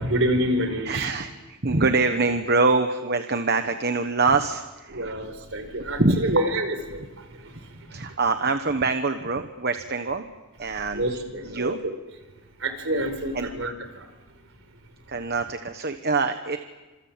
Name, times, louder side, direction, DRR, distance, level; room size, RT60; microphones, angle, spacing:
voice 1, 0.0-1.1 4.9-8.1 10.9-11.9 12.6-14.1, right 1 dB, 60° right, 8 dB, 4.7 m, -28 dB
voice 2, 0.8-5.2 6.0-6.3 7.9-10.2 10.6-11.8 13.3-13.5 15.1-16.6, right 3 dB, 45° right, 8 dB, 1.2 m, -24 dB
29.5 x 27.0 x 7.5 m, 1.2 s
head